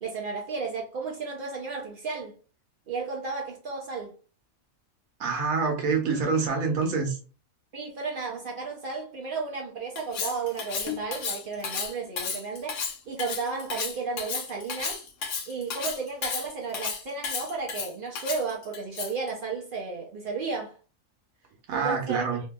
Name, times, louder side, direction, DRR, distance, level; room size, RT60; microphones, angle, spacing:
voice 1, 0.0-2.4 2.9-4.1 7.7-15.0 15.5-20.8 21.7-22.4, right 4 dB, 60° right, 0.6 m, -33 dB
voice 2, 5.2-7.2 21.7-22.4, right 5 dB, 90° right, 1.2 m, -26 dB
Cutlery silverware, 10.0-19.3, left 5 dB, 70° left, 0.9 m, -33 dB
2.7 x 2.6 x 2.2 m
omnidirectional pair, 1.4 m